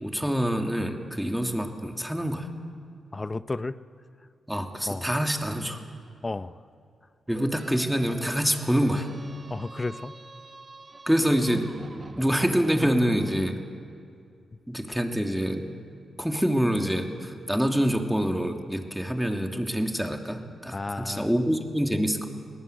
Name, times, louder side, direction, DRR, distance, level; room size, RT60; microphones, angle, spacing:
voice 1, 0.0-2.5 4.5-5.8 7.3-9.1 11.1-11.7 12.2-13.6 14.7-15.6 16.2-22.3, equal, 5° right, 4 dB, 2.8 m, -26 dB
voice 2, 3.1-3.8 4.9-5.1 6.2-6.6 9.5-10.2 14.9-15.0 20.7-21.3, left 3 dB, 30° left, 14 dB, 0.8 m, -32 dB
sound 1, 7.3-13.5, right 3 dB, 40° right, 1.6 m, -46 dB
22.5 x 18.0 x 8.2 m, 2.4 s
supercardioid pair, 45°, 0 cm